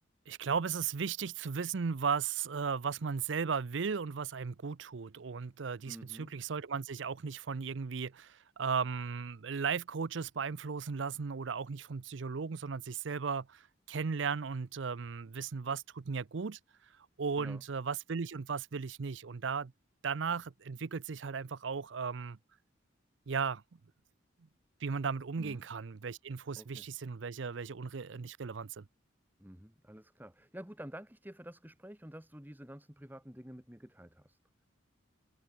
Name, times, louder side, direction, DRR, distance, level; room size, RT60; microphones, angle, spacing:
voice 1, 0.3-16.6 17.2-19.7 20.0-22.4 23.3-23.6 24.8-28.8, right 5 dB, 65° right, 0.6 m, -36 dB
voice 2, 5.9-6.3 17.4-17.6 25.4-25.6 26.6-26.9 29.4-34.4, equal, 10° right, 1.9 m, -49 dB
head